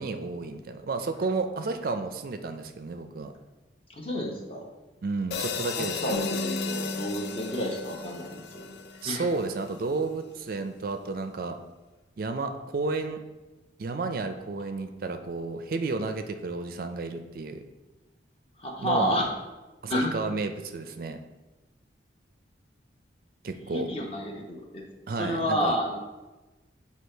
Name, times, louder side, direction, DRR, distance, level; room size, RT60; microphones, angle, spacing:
voice 1, 0.0-3.3 5.0-6.2 9.0-11.6 12.2-13.2 13.8-17.6 18.8-19.2 19.8-21.2 23.4-23.9 25.1-25.8, right 3 dB, 50° right, 8 dB, 0.4 m, -32 dB
voice 2, 3.9-4.6 5.8-9.3 18.6-19.3 19.9-20.2 23.7-24.8 25.2-26.0, equal, 30° left, 0 dB, 0.9 m, -30 dB
sound 1, 5.3-9.7, left 6 dB, 60° left, 0.3 m, -36 dB
Guitar, 6.1-9.1, left 2 dB, 75° left, 0.7 m, -36 dB
7.9 x 2.9 x 4.4 m, 1.1 s
head